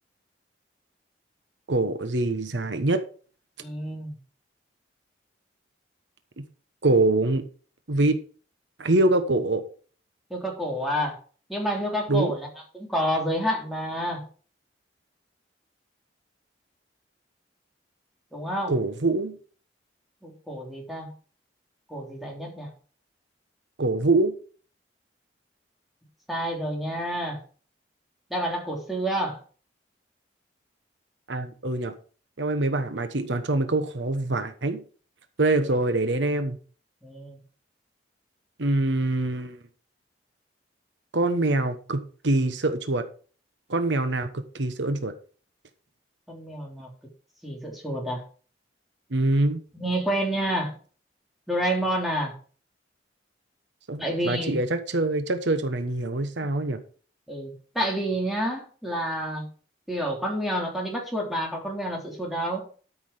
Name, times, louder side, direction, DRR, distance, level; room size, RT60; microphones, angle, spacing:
voice 1, 1.7-3.0 6.8-7.5 7.9-8.2 8.8-9.6 12.1-12.3 18.7-19.4 23.8-24.4 31.3-32.0 32.4-34.8 35.4-36.6 38.6-39.6 41.1-43.0 43.7-45.1 49.1-49.6 53.9-56.8, right 2 dB, 75° right, 1.1 m, -24 dB
voice 2, 3.6-4.2 10.3-11.1 11.5-12.5 12.7-14.2 18.3-18.7 20.2-21.1 21.9-22.7 26.3-27.4 28.3-29.4 35.6-35.7 37.0-37.4 46.3-46.9 47.4-48.2 49.7-50.7 51.5-52.3 54.0-54.6 57.3-59.4 59.9-62.6, equal, ahead, 3.4 m, -29 dB
12.5 x 6.1 x 4.9 m
head